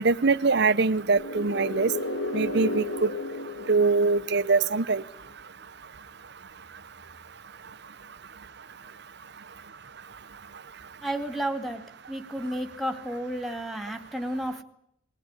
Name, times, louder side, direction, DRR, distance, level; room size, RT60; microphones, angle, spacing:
voice 1, 0.0-1.9 2.3-3.1 3.7-5.0, right 4 dB, 55° right, 14 dB, 0.9 m, -23 dB
sound 1, 1.0-4.8, left 2 dB, 85° left, 1.9 m, -33 dB
voice 2, 11.0-11.8 12.1-14.6, right 1 dB, ahead, 5 dB, 2.2 m, -32 dB
21.5 x 18.0 x 9.8 m, 0.73 s
head